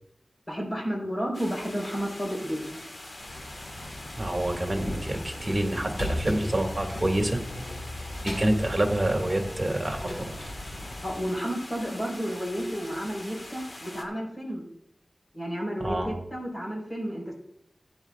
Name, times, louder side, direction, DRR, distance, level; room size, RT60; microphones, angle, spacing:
voice 1, 0.5-2.8 11.0-14.7 15.3-17.3, equal, 30° left, -1 dB, 4.4 m, -32 dB
sound 1, 1.3-14.0, left 1 dB, 50° left, 1.7 m, -43 dB
sound 2, 3.2-11.2, left 1 dB, 75° left, 5.0 m, -37 dB
voice 2, 4.2-7.4 8.2-10.4 15.8-16.1, right 1 dB, 30° right, 3 dB, 2.2 m, -27 dB
16.0 x 9.7 x 2.4 m, 0.73 s
wide cardioid pair, 85°, 0 cm